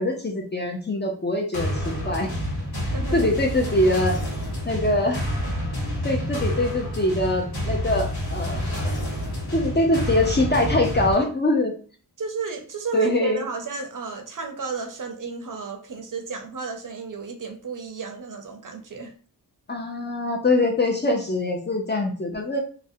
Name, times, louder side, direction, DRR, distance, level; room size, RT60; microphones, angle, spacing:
voice 1, 0.0-2.4 3.1-4.2 4.7-5.2 6.0-8.9 9.5-11.7 12.9-13.4 19.7-22.6, left 1 dB, 25° left, 1 dB, 0.4 m, -23 dB
sound 1, 1.5-11.1, equal, 65° left, 1.1 m, -28 dB
voice 2, 2.9-3.4 12.2-19.1, right 4 dB, 55° right, 4 dB, 0.5 m, -33 dB
2.4 x 2.0 x 2.6 m, 0.40 s
wide cardioid pair, 85°, 39 cm